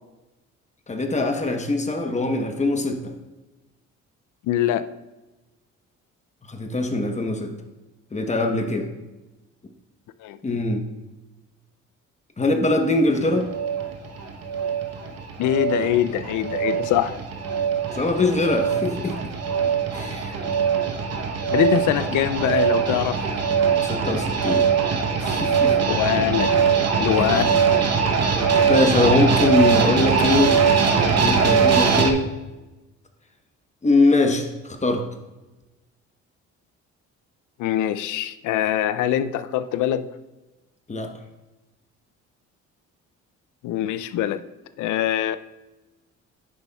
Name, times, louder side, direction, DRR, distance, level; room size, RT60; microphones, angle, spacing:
voice 1, 0.9-3.1 6.4-7.5 8.1-8.9 10.4-10.9 12.4-13.5 17.9-19.2 19.9-20.4 23.8-24.7 25.2-25.7 27.1-27.5 28.7-30.6 31.2-32.3 33.8-35.0 40.9-41.1, left 2 dB, 25° left, 5 dB, 1.0 m, -22 dB
voice 2, 4.5-4.9 10.2-10.4 15.4-17.1 21.5-23.2 25.9-26.5 27.0-27.6 37.6-40.1 43.6-44.4 44.8-45.4, left 11 dB, 80° left, 13 dB, 0.5 m, -23 dB
sound 1, 13.2-32.1, right 6 dB, 55° right, 1.0 m, -22 dB
9.5 x 6.9 x 2.3 m, 1.1 s
cardioid pair, 90°, 30 cm